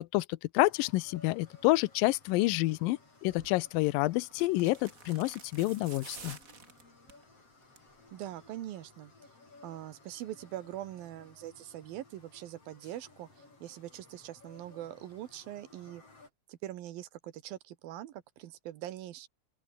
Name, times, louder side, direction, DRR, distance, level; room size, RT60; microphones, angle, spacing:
voice 1, 0.0-6.4, left 19 dB, 75° left, 2.2 m, -28 dB
sound 1, 0.6-16.3, left 3 dB, 35° left, 7.7 m, -59 dB
sound 2, 3.3-3.5 4.3-7.2 7.6-8.0 8.2-8.3, right 5 dB, 30° right, 1.8 m, -50 dB
voice 2, 8.1-9.1 9.6-16.0 16.5-19.3, right 13 dB, 70° right, 3.0 m, -43 dB
open air
omnidirectional pair, 4.5 m